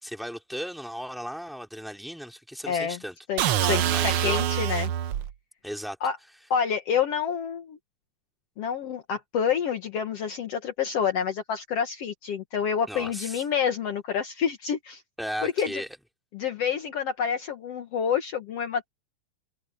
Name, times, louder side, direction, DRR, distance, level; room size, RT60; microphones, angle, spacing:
voice 1, 0.0-3.2 3.8-4.4 5.6-6.0 12.9-13.4 15.2-15.9, equal, ahead, 3.1 m, -36 dB
voice 2, 2.7-3.0 3.3-4.9 6.0-6.2 6.5-7.8 8.6-15.0 15.4-15.7 16.3-18.9, left 7 dB, 60° left, 2.2 m, -28 dB
sound 1, 3.4-5.3, right 11 dB, 70° right, 1.4 m, -25 dB
omnidirectional pair, 3.3 m